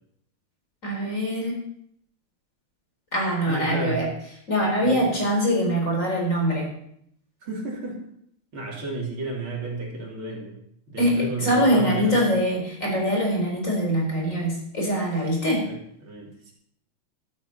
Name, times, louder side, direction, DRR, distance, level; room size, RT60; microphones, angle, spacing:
voice 1, 0.8-1.6 3.1-4.1 4.5-6.7 11.0-15.7, equal, 35° left, -1 dB, 4.7 m, -23 dB
voice 2, 3.5-4.0 4.8-5.0 7.4-8.0 8.5-10.6 10.9-12.2 15.7-15.8 16.0-16.5, right 3 dB, 70° right, -2 dB, 3.9 m, -32 dB
14.5 x 12.5 x 4.2 m, 0.70 s
omnidirectional pair, 2.3 m